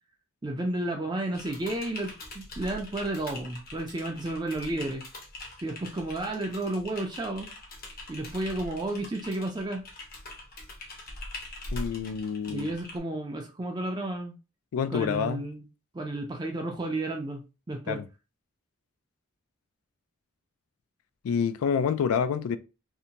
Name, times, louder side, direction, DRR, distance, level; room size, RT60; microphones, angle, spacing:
voice 1, 0.4-5.0 5.6-7.5 8.1-9.8 12.5-14.3 14.9-15.7 15.9-18.0, right 2 dB, 20° right, 0.3 m, -32 dB
Typing, 1.3-13.0, left 1 dB, 45° left, 0.7 m, -43 dB
voice 2, 11.7-12.7 14.7-15.4 17.9-18.0 21.2-22.6, left 7 dB, 85° left, 0.3 m, -27 dB
2.7 x 2.1 x 2.8 m
head